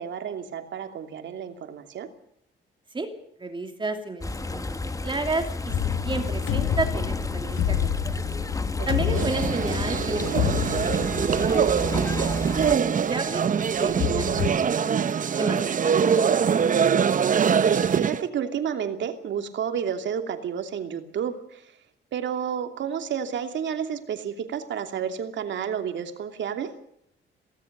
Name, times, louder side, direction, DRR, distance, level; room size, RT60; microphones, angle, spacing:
voice 1, 0.0-2.1 8.8-9.3 17.4-21.7 22.1-26.7, right 8 dB, 65° right, 6 dB, 2.7 m, -31 dB
voice 2, 3.4-8.5 8.9-11.5 11.7-12.2 12.6-15.1 15.4-16.2, right 3 dB, 25° right, 5 dB, 2.8 m, -33 dB
sound 1, 4.2-12.8, left 2 dB, 15° left, 1.4 m, -32 dB
sound 2, 5.7-12.6 13.1-13.2 13.8-14.5, left 11 dB, 75° left, 1.6 m, -29 dB
sound 3, 9.1-18.3, right 7 dB, 40° right, 0.9 m, -23 dB
22.5 x 18.0 x 6.7 m, 0.72 s
cardioid pair, 90°, 20 cm